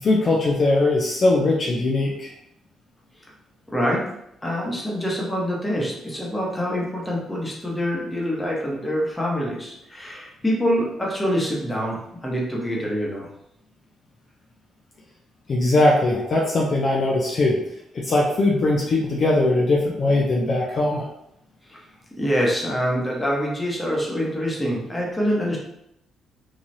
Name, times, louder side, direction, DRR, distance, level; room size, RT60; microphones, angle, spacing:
voice 1, 0.0-2.3 15.5-17.6 17.9-21.1, left 2 dB, 50° left, -2 dB, 0.5 m, -20 dB
voice 2, 3.7-4.1 4.4-13.3 21.7-21.8 22.2-25.6, equal, 15° left, -3 dB, 0.9 m, -25 dB
3.2 x 2.3 x 2.7 m, 0.77 s
cardioid pair, 90°, 0 cm